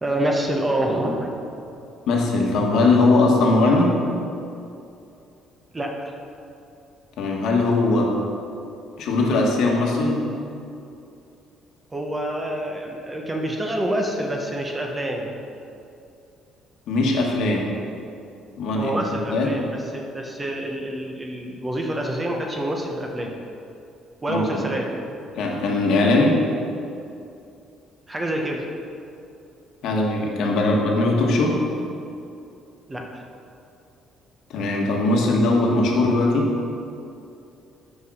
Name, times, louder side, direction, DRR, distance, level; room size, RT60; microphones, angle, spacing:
voice 1, 0.0-1.3 5.7-6.1 11.9-15.3 18.7-23.3 24.2-24.9 28.1-28.6 32.9-33.2, right 1 dB, 15° right, 1 dB, 0.8 m, -27 dB
voice 2, 2.1-4.0 7.2-8.1 9.0-10.3 16.9-17.7 18.6-19.0 19.3-19.5 24.3-24.6 25.4-26.4 29.8-31.6 34.5-36.5, left 2 dB, 65° left, -1 dB, 1.4 m, -20 dB
8.8 x 4.8 x 6.2 m, 2.6 s
cardioid pair, 150°, 0 cm